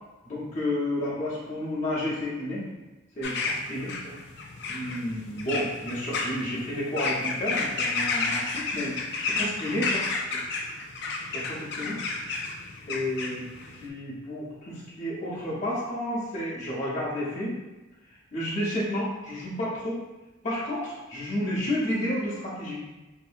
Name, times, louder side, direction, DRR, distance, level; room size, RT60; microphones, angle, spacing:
voice 1, 0.2-2.6 3.2-3.9 4.7-10.0 10.3-10.4 11.3-12.0 12.9-13.4 13.8-17.6 18.3-20.0 20.4-22.8, left 1 dB, 40° left, -9 dB, 0.8 m, -31 dB
sound 1, 3.2-13.9, left 3 dB, 60° left, 0.4 m, -31 dB
2.8 x 2.6 x 2.5 m, 1.1 s
head